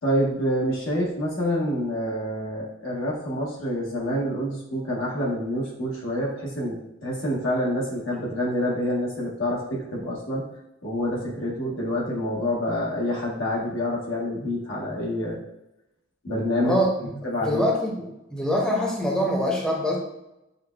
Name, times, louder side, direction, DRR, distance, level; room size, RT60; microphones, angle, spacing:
voice 1, 0.0-10.4 10.8-15.4 16.2-16.8 17.2-17.6, equal, 85° left, -3 dB, 1.1 m, -27 dB
voice 2, 16.6-18.0 18.3-20.0, equal, 5° left, -3 dB, 0.6 m, -24 dB
6.5 x 2.2 x 2.2 m, 0.91 s
head